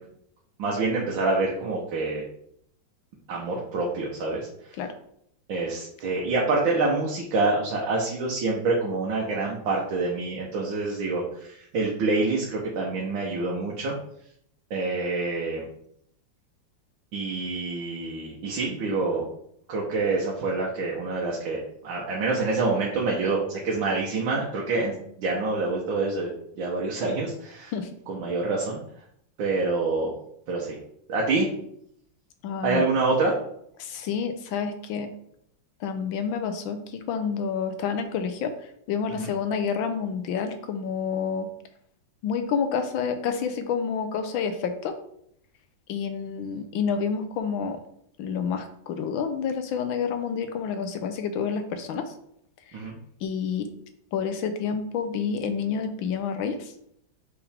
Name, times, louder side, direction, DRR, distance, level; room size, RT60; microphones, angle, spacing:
voice 1, 0.6-2.2 3.3-4.5 5.5-14.0 14.7-15.6 17.1-19.3 19.7-24.9 25.2-26.3 26.6-27.7 28.1-28.8 29.4-30.1 30.5-30.8 31.1-31.5 32.6-33.3 39.1-39.3 52.7-53.0, right 3 dB, 85° right, -3 dB, 1.8 m, -26 dB
voice 2, 32.4-32.8 33.8-35.1 35.8-38.5 38.9-41.5 42.2-45.0 45.9-47.8 48.2-52.1 53.2-53.7 54.1-56.7, left 6 dB, 85° left, 8 dB, 1.6 m, -29 dB
6.0 x 5.1 x 3.5 m, 0.71 s
omnidirectional pair, 2.1 m